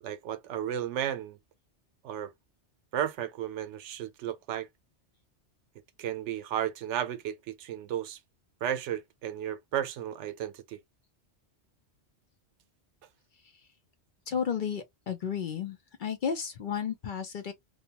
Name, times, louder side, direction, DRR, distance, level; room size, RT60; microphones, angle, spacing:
voice 1, 0.0-1.4 2.0-2.3 2.9-4.7 6.0-8.2 8.6-10.8, right 10 dB, 80° right, 0.9 m, -34 dB
voice 2, 14.3-17.5, left 7 dB, 55° left, 0.6 m, -33 dB
2.7 x 2.1 x 2.7 m
omnidirectional pair, 1.2 m